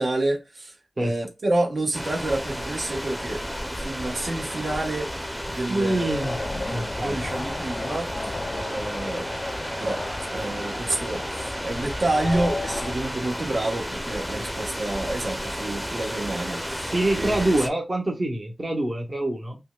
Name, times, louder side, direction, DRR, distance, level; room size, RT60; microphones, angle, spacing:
voice 1, 0.0-3.4 3.8-9.3 9.8-10.0 10.3-17.5, right 2 dB, 65° right, 1.1 m, -29 dB
sound 1, 1.9-17.7, equal, ahead, 0.7 m, -32 dB
voice 2, 5.7-6.4 6.7-7.2 16.9-19.6, right 1 dB, 40° right, 0.9 m, -25 dB
sound 2, 6.2-12.9, left 2 dB, 45° left, 0.3 m, -35 dB
sound 3, 9.0-12.7, right 2 dB, 85° right, 1.5 m, -44 dB
5.3 x 2.2 x 2.3 m
wide cardioid pair, 80°, 0 cm